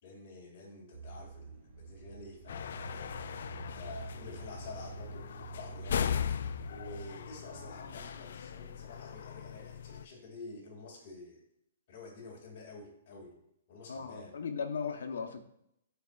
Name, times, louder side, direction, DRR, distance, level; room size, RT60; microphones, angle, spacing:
voice 1, 0.0-3.1 3.7-6.2 6.7-11.4 11.9-13.4 13.7-14.3, left 3 dB, 35° left, -3 dB, 2.2 m, -49 dB
sound 1, 0.9-8.1, right 5 dB, 35° right, 0.6 m, -48 dB
sound 2, 2.5-10.0, left 8 dB, 60° left, 0.3 m, -38 dB
voice 2, 13.9-15.4, left 6 dB, 90° left, 6 dB, 0.9 m, -37 dB
12.5 x 4.3 x 2.4 m, 0.78 s
hypercardioid pair, 170°, 0 cm